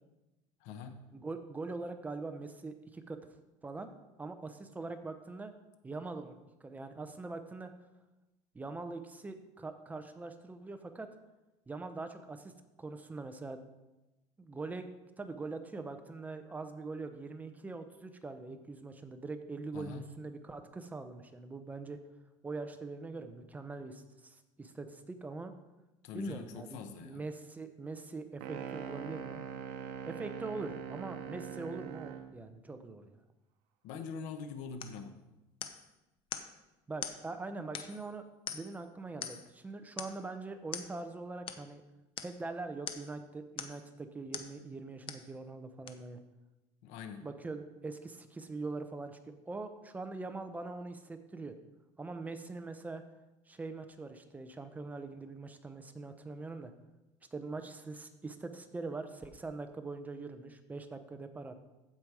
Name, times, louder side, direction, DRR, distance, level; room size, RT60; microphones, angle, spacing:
voice 1, 0.6-1.1 19.7-20.1 26.0-27.2 33.8-35.2 46.8-47.3, left 5 dB, 80° left, 9 dB, 1.0 m, -43 dB
voice 2, 1.1-3.2 3.6-3.9 4.2-5.5 5.8-7.7 8.5-11.1 11.7-12.5 12.8-13.6 14.4-14.9 15.2-22.0 22.4-25.5 26.1-29.4 30.1-33.2 36.9-38.2 38.5-41.8 42.2-46.2 47.2-51.6 52.0-53.0 53.5-56.7 57.3-61.6, right 3 dB, 15° right, 7 dB, 0.7 m, -43 dB
sound 1, 28.4-32.3, right 8 dB, 85° right, 1.0 m, -42 dB
sound 2, 34.8-35.0 35.6-35.9 36.3-36.5 37.0-37.2 37.7-38.1 38.5-38.8 39.2-39.5 40.0-40.2 40.7-40.9 41.5-41.6 42.2-42.4 42.9-43.1 43.6-43.9 44.3-44.5 45.1-45.3 45.9-46.0, left 9 dB, 45° left, 0.7 m, -42 dB
15.0 x 5.2 x 4.7 m, 1.0 s
cardioid pair, 150°, 12 cm